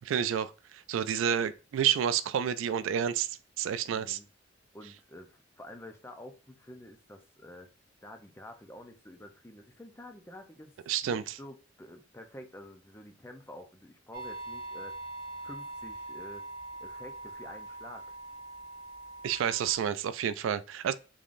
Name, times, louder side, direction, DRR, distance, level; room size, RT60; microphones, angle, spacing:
voice 1, 0.1-4.2 10.9-11.2 19.2-20.9, right 8 dB, 80° right, 0.3 m, -30 dB
voice 2, 3.9-4.3 4.7-7.7 8.0-10.8 11.0-15.0 15.4-16.4 16.8-18.0, left 1 dB, 15° left, 0.5 m, -49 dB
sound 1, 14.1-19.7, right 2 dB, 50° right, 1.0 m, -43 dB
3.6 x 3.6 x 2.5 m
head